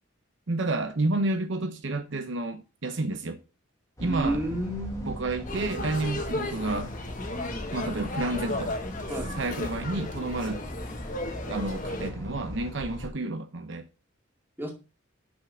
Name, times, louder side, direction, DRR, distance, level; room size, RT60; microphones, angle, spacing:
voice 1, 0.5-3.4 4.0-4.6 5.0-6.9 7.7-8.7 9.3-10.6 11.5-13.8, right 2 dB, 65° right, 0.9 m, -30 dB
sound 1, 4.0-13.1, equal, 15° left, 1.5 m, -39 dB
voice 2, 4.0-5.3 9.1-9.4 14.6-14.7, right 1 dB, 10° right, 2.1 m, -31 dB
sound 2, 5.5-12.1, left 2 dB, 40° left, 1.3 m, -35 dB
6.3 x 6.0 x 6.2 m
head